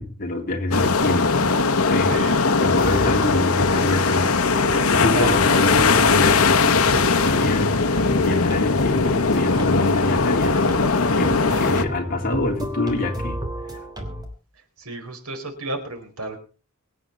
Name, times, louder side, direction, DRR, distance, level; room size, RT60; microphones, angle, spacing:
voice 1, 0.0-2.2 2.6-4.3 4.9-7.8 8.1-10.6 11.1-13.4, left 2 dB, 40° left, 1 dB, 3.5 m, -26 dB
sound 1, 0.7-11.8, left 4 dB, 75° left, 1.2 m, -19 dB
voice 2, 2.1-2.4 5.1-5.3 11.1-11.2 11.5-11.6 14.8-16.4, right 2 dB, 85° right, 4 dB, 4.7 m, -32 dB
sound 2, 2.5-14.2, left 1 dB, 20° right, 3.3 m, -32 dB
24.0 x 9.2 x 4.1 m, 0.37 s
head